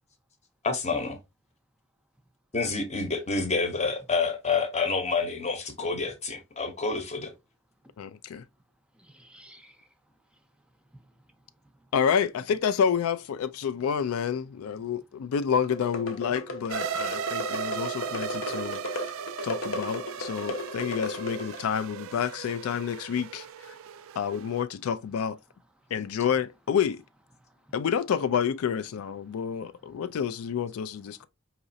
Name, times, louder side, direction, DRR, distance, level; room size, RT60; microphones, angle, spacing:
voice 1, 0.6-1.2 2.5-7.3, left 4 dB, 30° left, 0.9 m, -28 dB
voice 2, 8.0-8.5 11.9-19.2 19.4-23.7 24.2-25.4 25.9-27.0 27.7-31.3, left 7 dB, 80° left, 0.4 m, -29 dB
voice 3, 8.9-9.9 10.3-10.4 10.9-11.5 11.7-11.9 17.2-17.8 18.4-19.0 23.7-24.1 27.4-27.7 29.3-29.4, right 1 dB, 5° right, 0.5 m, -58 dB
sound 1, 15.6-21.7, left 1 dB, 65° left, 0.8 m, -35 dB
Hyper Saw Riser, 16.7-24.6, right 8 dB, 75° right, 0.4 m, -37 dB
4.9 x 3.0 x 2.6 m
head